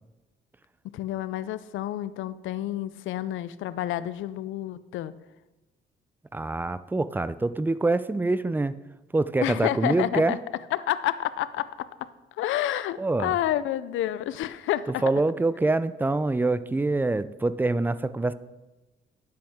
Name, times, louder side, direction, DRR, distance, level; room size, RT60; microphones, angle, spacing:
voice 1, 0.9-5.1 9.4-10.4 10.7-11.9 12.4-15.0, left 12 dB, 80° left, 16 dB, 0.5 m, -29 dB
voice 2, 6.3-8.8 9.1-10.3 13.0-13.4 15.0-18.3, right 2 dB, 10° right, 15 dB, 0.3 m, -25 dB
10.5 x 7.7 x 3.6 m, 1.1 s
cardioid pair, 90°, 20 cm